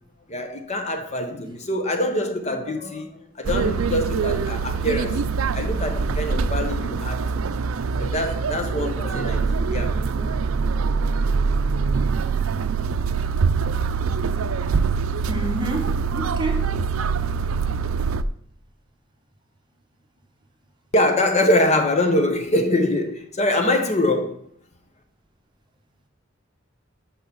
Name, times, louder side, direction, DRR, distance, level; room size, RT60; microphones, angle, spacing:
voice 1, 0.3-5.3 5.5-7.6 8.0-10.5 20.9-24.4, left 1 dB, 30° left, 0.9 m, -24 dB
sound 1, 3.4-18.2, right 5 dB, 80° right, 0.4 m, -24 dB
voice 2, 15.3-16.7, right 1 dB, 20° right, 1.1 m, -28 dB
6.4 x 5.7 x 7.1 m
head